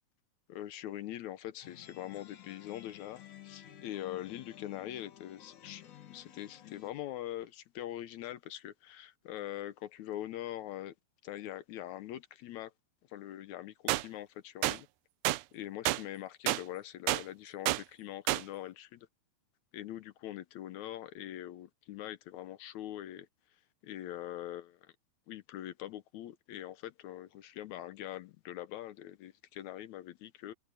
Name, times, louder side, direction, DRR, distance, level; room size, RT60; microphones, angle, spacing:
voice 1, 0.5-5.8 6.1-10.9 11.2-12.7 13.1-14.9 15.5-19.1 19.7-23.3 23.8-24.9 25.3-30.5, left 13 dB, 85° left, 1.6 m, -43 dB
sound 1, 1.6-6.9, left 12 dB, 55° left, 3.0 m, -53 dB
sound 2, 13.9-14.0 14.6-14.8 15.3-15.4 15.9-16.0 16.5-16.6 17.1-17.2 17.7-17.8 18.3-18.4, right 18 dB, 85° right, 1.9 m, -29 dB
open air
omnidirectional pair, 4.4 m